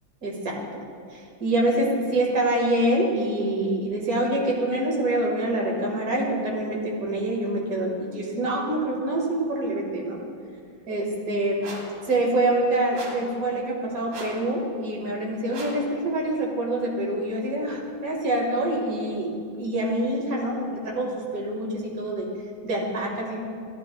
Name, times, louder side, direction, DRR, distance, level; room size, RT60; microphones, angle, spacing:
voice 1, 0.2-0.6 1.1-10.2 10.9-11.6 12.1-19.3 19.6-22.3 22.6-23.4, right 1 dB, 45° right, -2 dB, 2.1 m, -26 dB
sound 1, 11.6-12.0 12.9-13.3 14.1-14.5 15.5-15.9, right 2 dB, 85° right, 2.6 m, -38 dB
13.5 x 11.5 x 2.2 m, 2.2 s
omnidirectional pair, 2.4 m